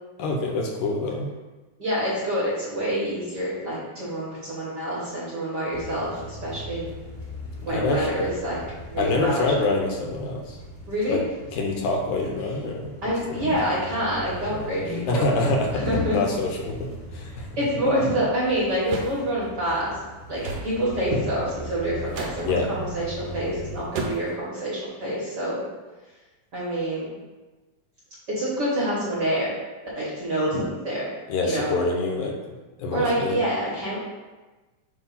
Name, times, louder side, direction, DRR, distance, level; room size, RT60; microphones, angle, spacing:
voice 1, 0.2-1.3 7.7-8.2 9.0-10.6 11.1-11.2 11.5-13.5 15.1-17.3 22.4-22.7 31.3-32.4 32.8-33.4, left 2 dB, 80° left, 1 dB, 2.1 m, -26 dB
voice 2, 1.8-6.8 7.6-8.6 8.9-9.4 10.9-11.2 13.0-15.2 15.7-16.2 17.3-20.0 20.3-25.6 26.5-27.1 28.3-29.5 29.9-31.1 31.4-31.7 32.9-34.0, equal, 50° right, -8 dB, 1.5 m, -27 dB
sound 1, 5.7-23.8, left 1 dB, 50° left, 0.5 m, -39 dB
sound 2, 18.9-19.2 20.4-20.7 22.1-22.4 23.9-24.4, right 4 dB, 75° right, 1.5 m, -31 dB
6.7 x 2.7 x 5.5 m, 1.2 s
omnidirectional pair, 3.6 m